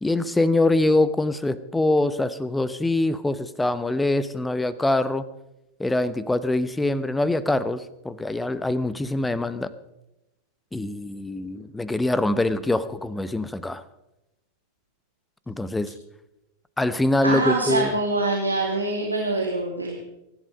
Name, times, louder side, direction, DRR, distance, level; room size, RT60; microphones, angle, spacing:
voice 1, 0.0-5.2 5.8-9.7 10.7-13.8 15.5-15.9 16.8-17.9, left 2 dB, 5° left, 15 dB, 0.9 m, -24 dB
voice 2, 17.2-20.0, right 2 dB, 85° right, -1 dB, 2.4 m, -24 dB
24.0 x 11.0 x 5.3 m, 0.93 s
figure-of-eight pair, 90°, 0 cm